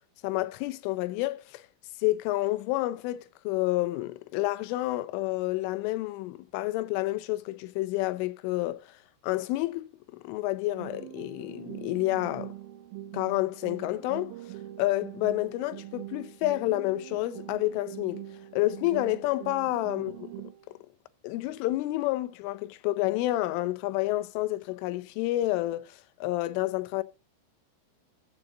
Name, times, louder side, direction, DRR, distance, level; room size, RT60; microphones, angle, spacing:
voice 1, 0.2-1.6 2.0-8.9 9.2-12.5 13.1-14.3 14.8-18.2 18.5-20.1 21.2-27.0, left 17 dB, 85° left, 3.3 m, -29 dB
sound 1, 10.7-20.7, right 13 dB, 90° right, 3.3 m, -43 dB
14.5 x 8.0 x 3.9 m
omnidirectional pair, 5.6 m